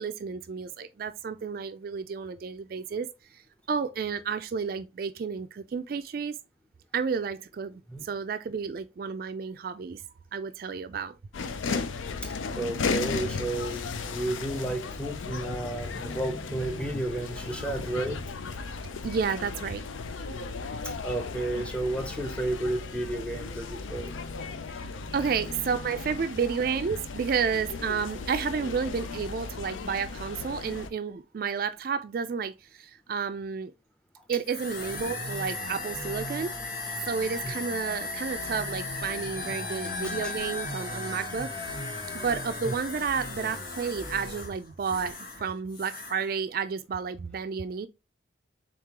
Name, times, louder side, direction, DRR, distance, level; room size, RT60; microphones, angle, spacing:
voice 1, 0.0-3.4 3.7-6.4 6.9-10.0 10.3-11.2 19.0-19.8 24.8-33.7 34.3-36.5 37.1-41.5 42.1-47.9, right 6 dB, 50° right, 0.3 m, -31 dB
sound 1, 11.3-30.9, left 4 dB, 90° left, 0.5 m, -36 dB
voice 2, 12.2-18.5 20.8-24.2 37.4-37.5 40.0-40.3 42.7-42.8, right 2 dB, 5° left, 0.5 m, -32 dB
sound 2, 34.4-45.4 45.7-46.2, left 2 dB, 50° left, 1.1 m, -36 dB
3.9 x 3.7 x 2.9 m
head